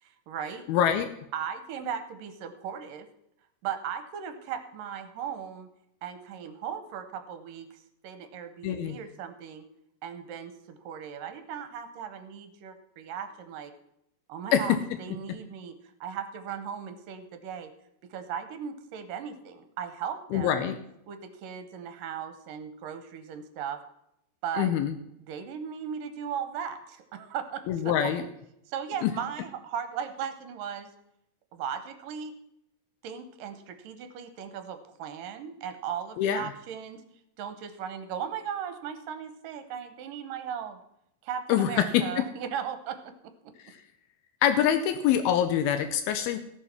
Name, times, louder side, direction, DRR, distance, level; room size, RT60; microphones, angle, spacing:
voice 1, 0.0-0.7 1.3-3.1 3.6-5.7 6.0-9.6 10.0-13.7 14.3-15.8 16.0-17.7 18.0-20.7 21.1-23.8 24.4-24.7 25.3-28.3 28.7-30.9 31.5-32.3 33.0-37.0 37.4-40.8 41.2-43.5, right 8 dB, 75° right, 9 dB, 2.3 m, -37 dB
voice 2, 0.7-1.1 8.6-9.0 14.5-14.6 20.3-20.8 24.6-24.9 27.7-28.2 29.0-29.1 36.2-36.5 41.5-42.3 43.6-43.8 44.4-46.4, left 9 dB, 85° left, 9 dB, 2.5 m, -25 dB
15.0 x 7.0 x 5.8 m, 0.78 s
omnidirectional pair, 4.4 m